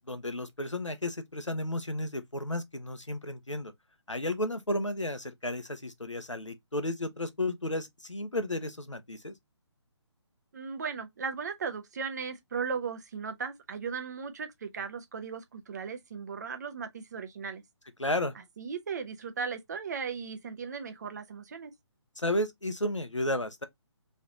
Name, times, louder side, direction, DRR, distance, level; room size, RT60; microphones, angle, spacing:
voice 1, 0.0-3.7 4.1-9.3 18.0-18.3 22.2-23.6, left 1 dB, 90° left, 0.8 m, -33 dB
voice 2, 10.5-17.6 18.6-21.7, right 5 dB, 35° right, 0.7 m, -37 dB
3.2 x 2.8 x 3.7 m
figure-of-eight pair, 140°, 15 cm